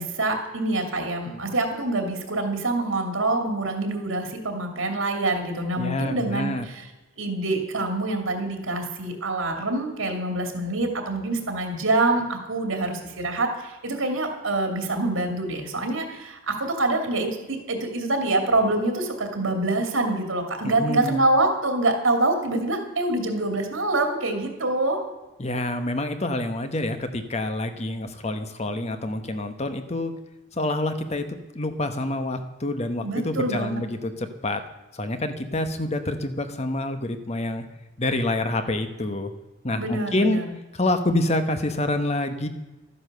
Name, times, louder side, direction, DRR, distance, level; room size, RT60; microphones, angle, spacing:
voice 1, 0.0-6.8 7.2-25.0 33.0-33.8 39.8-40.4, right 2 dB, 75° right, 4 dB, 2.6 m, -25 dB
voice 2, 5.8-6.7 20.6-21.3 25.4-30.1 30.5-31.3 31.5-34.6 34.9-37.7 38.0-39.3 39.6-40.4 40.7-42.5, left 1 dB, 30° left, 8 dB, 1.1 m, -27 dB
13.5 x 9.8 x 6.8 m, 1.1 s
head